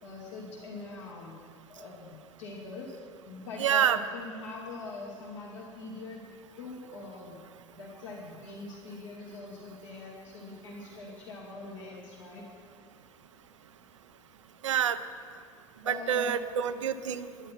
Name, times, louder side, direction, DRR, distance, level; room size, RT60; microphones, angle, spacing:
voice 1, 0.0-1.3 1.7-6.2 6.6-7.4 7.7-12.5 15.8-16.3, left 3 dB, 75° left, -5 dB, 2.4 m, -43 dB
voice 2, 3.6-4.0 14.6-15.0 15.9-17.3, right 9 dB, 75° right, 12 dB, 0.5 m, -27 dB
10.5 x 10.5 x 5.9 m, 2.1 s
figure-of-eight pair, 65°, 16 cm